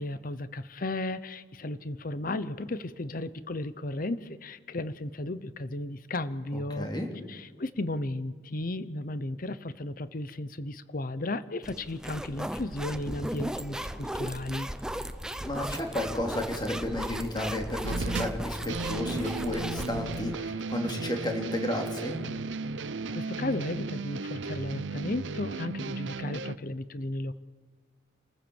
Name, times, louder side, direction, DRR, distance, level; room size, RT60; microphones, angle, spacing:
voice 1, 0.0-6.9 7.3-14.7 23.1-27.3, left 2 dB, 50° left, 14 dB, 0.9 m, -34 dB
voice 2, 6.5-7.1 15.4-22.2, left 1 dB, 25° left, 3 dB, 3.1 m, -32 dB
sound 1, 11.6-20.4, equal, 5° right, 0.7 m, -37 dB
Rock Beat, 17.8-26.6, right 4 dB, 85° right, 0.6 m, -35 dB
28.0 x 14.5 x 7.1 m, 1.5 s
head